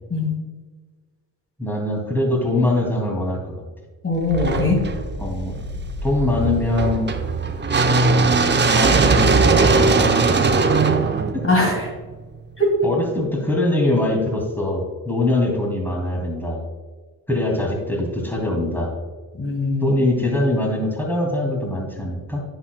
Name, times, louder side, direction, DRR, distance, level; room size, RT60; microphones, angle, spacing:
voice 1, 1.6-3.6 5.2-5.6 6.0-7.1 8.1-10.7 11.3-11.4 12.8-16.6 17.3-18.9 19.8-22.4, left 1 dB, 5° left, 0 dB, 2.4 m, -23 dB
voice 2, 4.0-4.8 11.4-11.9 12.6-12.7 19.3-19.9, left 2 dB, 30° left, -1 dB, 2.1 m, -21 dB
sound 1, 4.3-12.4, right 4 dB, 25° right, 0.7 m, -19 dB
10.0 x 7.1 x 2.2 m, 1.4 s
supercardioid pair, 65°, 45 cm